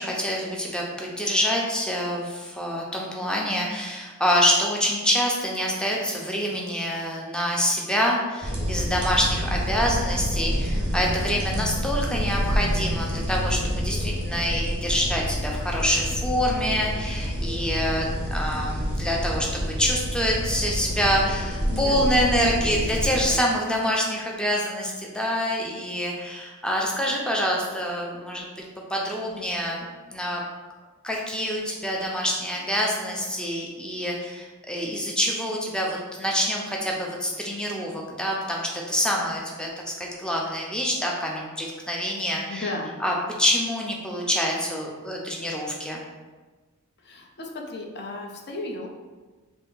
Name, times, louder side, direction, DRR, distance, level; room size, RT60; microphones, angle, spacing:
voice 1, 0.0-28.5 28.9-30.4 31.0-39.7 40.0-42.7 43.0-46.0, equal, 5° left, -2 dB, 0.5 m, -26 dB
sound 1, 8.4-23.3, equal, 20° right, 0.8 m, -28 dB
voice 2, 21.7-22.1 42.5-42.9 47.0-48.9, left 2 dB, 50° left, 1 dB, 0.5 m, -34 dB
3.3 x 2.6 x 3.7 m, 1.3 s
head